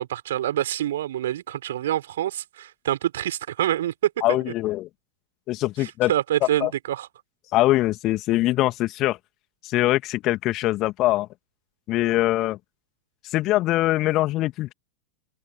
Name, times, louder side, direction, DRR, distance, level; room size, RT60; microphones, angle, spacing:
voice 1, 0.0-4.4 5.8-7.1, right 12 dB, 60° right, 5.8 m, -26 dB
voice 2, 4.2-4.9 5.5-6.1 6.6-6.7 7.5-9.2 9.6-11.3 11.9-12.6 13.2-14.7, left 17 dB, 35° left, 2.6 m, -23 dB
figure-of-eight pair, 90°, 0 cm